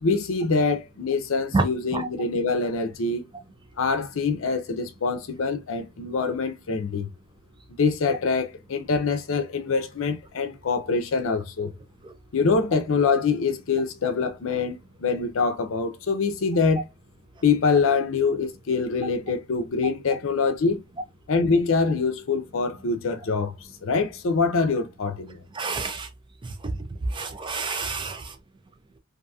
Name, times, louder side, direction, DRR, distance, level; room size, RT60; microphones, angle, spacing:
voice 1, 0.0-3.2 3.8-7.1 7.8-11.7 12.3-16.8 17.4-20.8 21.3-23.6 23.8-25.4, left 4 dB, 75° left, 0.5 m, -24 dB
voice 2, 25.5-26.1 26.4-26.7 27.1-28.3, right 3 dB, 25° right, 0.4 m, -28 dB
2.7 x 2.6 x 2.3 m
head